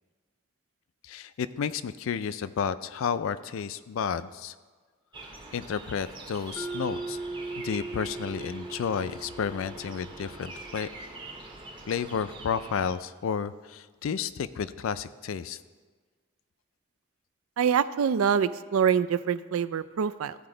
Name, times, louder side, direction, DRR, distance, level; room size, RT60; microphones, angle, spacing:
voice 1, 1.0-4.5 5.2-7.2 7.6-10.9 11.9-15.6, left 6 dB, 75° left, 14 dB, 0.4 m, -32 dB
sound 1, 5.1-12.9, right 2 dB, 20° right, 0.8 m, -45 dB
Mallet percussion, 6.6-11.1, right 3 dB, 5° left, 0.6 m, -39 dB
voice 2, 17.6-20.4, right 7 dB, 80° right, 15 dB, 0.4 m, -25 dB
15.0 x 5.0 x 3.8 m, 1.4 s
head